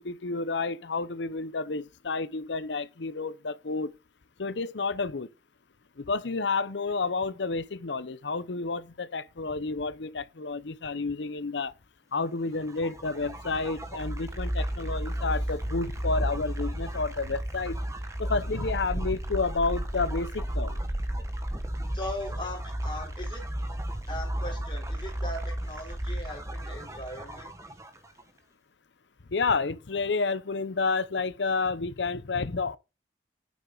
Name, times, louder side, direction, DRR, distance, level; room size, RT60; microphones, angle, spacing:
voice 1, 0.0-3.9 4.4-5.3 6.0-11.7 12.1-17.8 18.2-20.8 29.3-32.8, left 4 dB, 80° left, 0.8 m, -30 dB
sound 1, 12.5-28.2, right 1 dB, 15° right, 1.3 m, -33 dB
voice 2, 21.9-23.4 24.1-27.5, left 1 dB, 25° left, 3.6 m, -39 dB
8.9 x 8.0 x 3.9 m
head